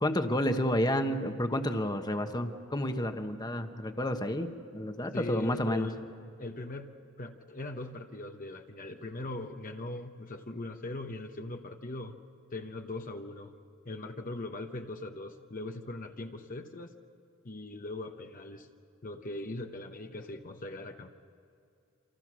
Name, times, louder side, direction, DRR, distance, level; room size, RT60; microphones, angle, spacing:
voice 1, 0.0-5.9, left 1 dB, 20° left, 7 dB, 1.2 m, -30 dB
voice 2, 5.1-6.0 6.4-12.2 12.5-13.5 13.8-16.9 17.4-18.7 19.0-21.1, left 2 dB, 45° left, 4 dB, 1.0 m, -40 dB
28.5 x 26.5 x 6.3 m, 2.5 s
head